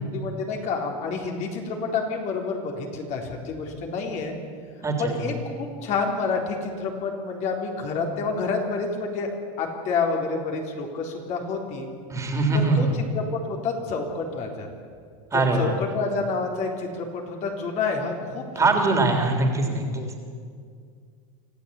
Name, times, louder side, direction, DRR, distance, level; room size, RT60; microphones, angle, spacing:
voice 1, 0.1-4.4 5.0-11.9 12.5-12.9 13.1-14.7 15.3-18.7 19.9-20.2, left 4 dB, 45° left, 1 dB, 3.9 m, -29 dB
voice 2, 4.8-5.1 12.1-12.9 15.3-15.7 18.6-20.0, right 3 dB, 15° right, 3 dB, 3.5 m, -22 dB
25.0 x 15.0 x 8.4 m, 2.1 s
supercardioid pair, 135°, 17 cm